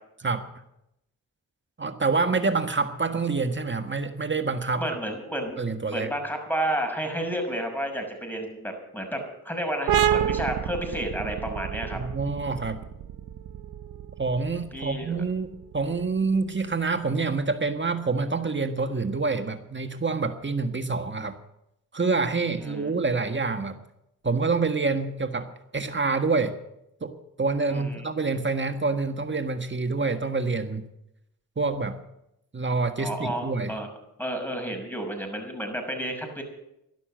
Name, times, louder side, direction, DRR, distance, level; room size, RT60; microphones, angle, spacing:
voice 1, 1.8-5.0 5.6-6.1 11.9-12.8 14.2-21.4 21.9-23.8 24.2-26.5 27.0-30.8 31.6-32.0 32.5-33.7, right 4 dB, 30° right, 8 dB, 1.7 m, -27 dB
voice 2, 4.7-5.6 5.9-9.2 9.4-12.0 14.7-15.2 22.6-23.0 27.7-28.0 33.0-33.9 34.2-36.4, right 1 dB, 5° left, 4 dB, 6.1 m, -31 dB
sound 1, 9.9-17.2, right 10 dB, 60° right, 1.2 m, -29 dB
12.5 x 12.5 x 7.7 m, 0.83 s
hypercardioid pair, 40°, 40 cm